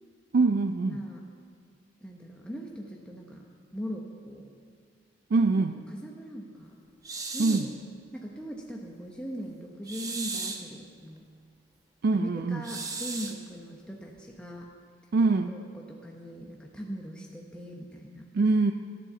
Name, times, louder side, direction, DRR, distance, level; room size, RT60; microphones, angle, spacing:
voice 1, 0.3-1.0 5.3-5.8 7.4-7.7 12.0-12.6 15.1-15.5 18.3-18.7, right 3 dB, 55° right, 9 dB, 0.4 m, -24 dB
voice 2, 0.9-1.2 2.0-3.4 3.7-4.5 5.5-5.7 5.9-6.8 7.3-7.7 8.1-11.2 12.1-14.7 15.4-18.3, equal, 5° left, -2 dB, 0.9 m, -40 dB
sound 1, 7.0-7.7 9.9-10.7 12.6-13.4, right 3 dB, 20° right, 1.0 m, -36 dB
13.5 x 10.0 x 7.0 m, 2.2 s
head